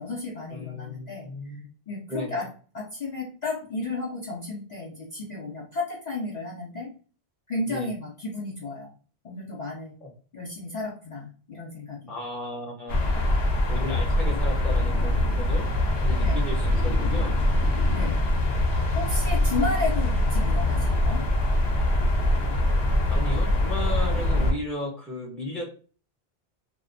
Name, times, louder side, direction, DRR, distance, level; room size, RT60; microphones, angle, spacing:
voice 1, 0.0-1.6 1.9-2.5 2.7-6.9 7.5-8.9 9.2-10.0 10.3-12.1 16.2-16.4 17.8-18.2 19.0-21.2, left 3 dB, 55° left, -3 dB, 0.6 m, -33 dB
voice 2, 0.5-1.7 2.1-2.4 7.7-7.9 10.0-10.1 12.1-13.1 13.7-15.7 15.9-17.4 23.1-25.7, left 1 dB, ahead, -2 dB, 0.6 m, -35 dB
sound 1, 12.9-24.5, left 1 dB, 80° left, 0.9 m, -23 dB
2.4 x 2.1 x 2.5 m, 0.39 s
omnidirectional pair, 1.0 m